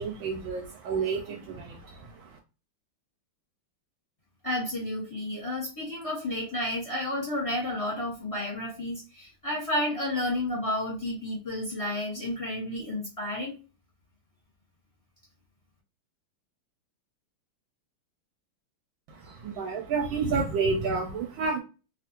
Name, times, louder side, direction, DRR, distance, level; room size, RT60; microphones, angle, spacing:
voice 1, 0.0-2.4 19.1-21.6, right 4 dB, 75° right, 4 dB, 1.3 m, -30 dB
voice 2, 4.4-13.5, left 1 dB, 25° left, -4 dB, 0.8 m, -31 dB
3.3 x 2.5 x 2.8 m, 0.32 s
omnidirectional pair, 2.3 m